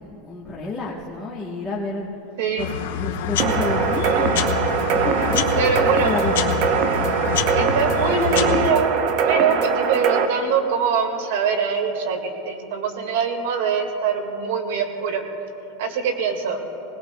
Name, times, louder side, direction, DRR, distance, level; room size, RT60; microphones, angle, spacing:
voice 1, 0.0-2.1 2.5-4.5 5.0-6.6, left 3 dB, 5° left, -8 dB, 1.1 m, -30 dB
voice 2, 2.4-2.8 5.6-6.1 7.5-8.9 9.3-15.2 15.8-16.6, right 5 dB, 80° right, 4 dB, 1.8 m, -23 dB
sound 1, 2.6-8.7, left 8 dB, 90° left, 1.0 m, -26 dB
sound 2, 3.4-10.3, right 6 dB, 45° right, 0.7 m, -22 dB
20.0 x 20.0 x 2.2 m, 3.0 s
supercardioid pair, 170°, 0 cm